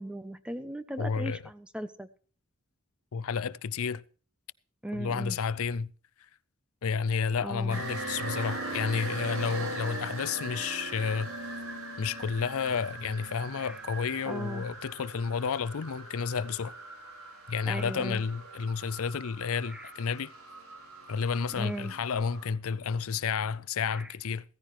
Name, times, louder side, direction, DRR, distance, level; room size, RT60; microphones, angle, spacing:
voice 1, 0.0-2.1 4.8-5.4 7.4-7.8 13.6-13.8 14.3-14.6 17.7-18.2 19.7-19.9 21.6-21.9 23.9-24.1, right 1 dB, 5° right, 0.5 m, -38 dB
voice 2, 1.0-1.4 3.1-4.0 4.9-5.9 6.8-11.3 12.0-16.7 17.5-20.3 21.1-24.4, left 6 dB, 75° left, 0.5 m, -31 dB
sound 1, 7.7-22.4, right 2 dB, 80° right, 4.7 m, -40 dB
16.5 x 14.5 x 3.0 m
head